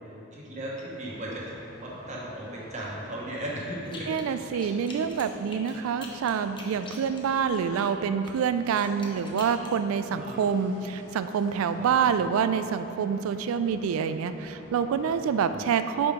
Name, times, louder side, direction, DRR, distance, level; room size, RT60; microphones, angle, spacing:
voice 1, 0.3-1.5 1.8-4.1 9.9-10.4 11.7-12.1 15.0-15.2, right 1 dB, 35° right, -4 dB, 1.1 m, -37 dB
sound 1, 0.9-15.5, equal, 45° left, 1.3 m, -50 dB
sound 2, 3.8-4.3 4.5-7.8 8.2-9.7, left 3 dB, 25° left, 0.7 m, -45 dB
voice 2, 4.1-16.1, right 7 dB, 80° right, 14 dB, 0.3 m, -27 dB
sound 3, 7.3-8.0, left 1 dB, 90° left, 1.3 m, -50 dB
5.4 x 4.5 x 5.0 m, 2.7 s
head